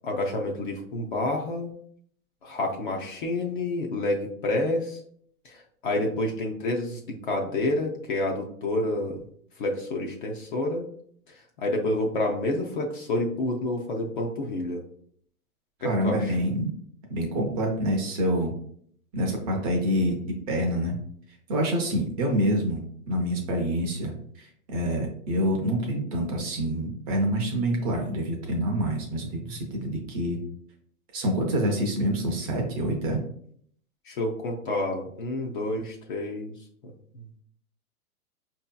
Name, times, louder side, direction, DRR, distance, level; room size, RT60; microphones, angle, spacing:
voice 1, 0.0-1.7 2.4-5.0 5.4-9.2 9.6-10.9 11.6-14.8 15.8-16.3 34.1-36.5 36.8-37.3, left 2 dB, 40° left, 1 dB, 0.4 m, -29 dB
voice 2, 15.8-16.7 17.1-18.5 19.1-20.2 20.5-20.9 21.5-30.4 31.1-33.2, equal, 25° right, 1 dB, 0.5 m, -27 dB
4.8 x 2.7 x 2.2 m, 0.64 s
hypercardioid pair, 140°, 44 cm